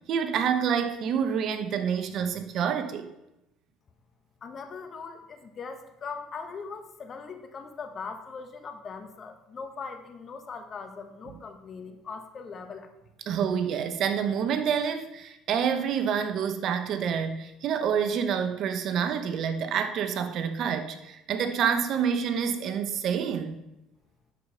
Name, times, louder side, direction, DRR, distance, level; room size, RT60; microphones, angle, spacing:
voice 1, 0.1-3.1 11.3-11.4 13.3-23.6, right 7 dB, 55° right, 8 dB, 1.0 m, -28 dB
voice 2, 4.4-12.9, left 5 dB, 35° left, 7 dB, 1.1 m, -40 dB
11.5 x 5.0 x 5.6 m, 0.93 s
supercardioid pair, 100°, 0 cm